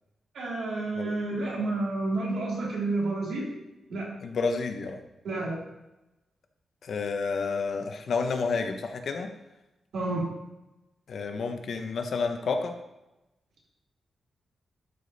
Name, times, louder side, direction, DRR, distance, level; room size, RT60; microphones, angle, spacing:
voice 1, 0.3-3.5 3.9-4.1 5.2-5.6 9.9-10.2, right 2 dB, 85° right, -4 dB, 3.1 m, -30 dB
voice 2, 4.2-5.0 6.8-9.3 11.1-12.7, left 4 dB, 60° left, 6 dB, 0.9 m, -30 dB
12.0 x 5.1 x 4.1 m, 0.96 s
wide cardioid pair, 155°, 0 cm